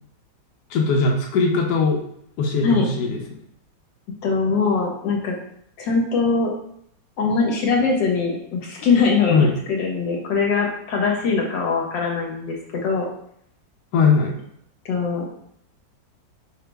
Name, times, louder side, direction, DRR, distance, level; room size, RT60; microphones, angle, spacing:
voice 1, 0.7-2.0 2.4-3.2 9.3-9.5 13.9-14.3, left 4 dB, 70° left, -1 dB, 1.2 m, -19 dB
voice 2, 4.2-5.4 5.8-6.5 7.2-13.1 14.8-15.4, left 4 dB, 85° left, 0 dB, 1.5 m, -22 dB
5.4 x 2.0 x 3.3 m, 0.70 s
omnidirectional pair, 2.0 m